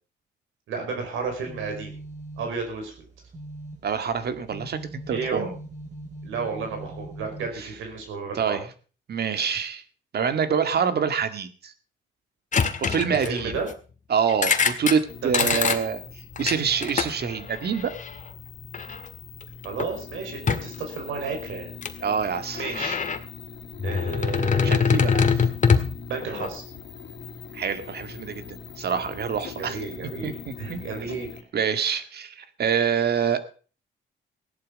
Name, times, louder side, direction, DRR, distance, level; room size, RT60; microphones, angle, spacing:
voice 1, 0.7-2.0 2.4-2.9 5.1-5.5 6.2-8.6 13.2-13.7 15.2-15.6 19.6-21.7 22.5-23.0 23.8-25.0 26.1-26.6 29.6-31.3, right 5 dB, 85° right, 3 dB, 5.3 m, -32 dB
sound 1, 1.2-8.1, right 1 dB, 40° right, 5.6 m, -42 dB
voice 2, 3.8-5.5 7.6-7.7 8.4-8.6 9.1-9.8 10.1-11.7 12.8-13.6 14.1-16.0 16.4-17.9 22.0-22.7 24.6-25.5 27.5-29.8 30.2-30.8 31.5-33.4, right 7 dB, 55° right, 9 dB, 1.9 m, -26 dB
sound 2, 12.5-13.7 14.3-15.0 15.3-15.8 16.4-18.1 18.7-19.1 19.4-19.9 20.5-20.7 21.8-21.9 22.4-23.2 23.8-26.5, left 5 dB, 40° left, 1.8 m, -24 dB
sound 3, 15.1-31.4, left 6 dB, 65° left, 2.6 m, -42 dB
16.5 x 11.0 x 5.3 m, 0.39 s
cardioid pair, 90°, 20 cm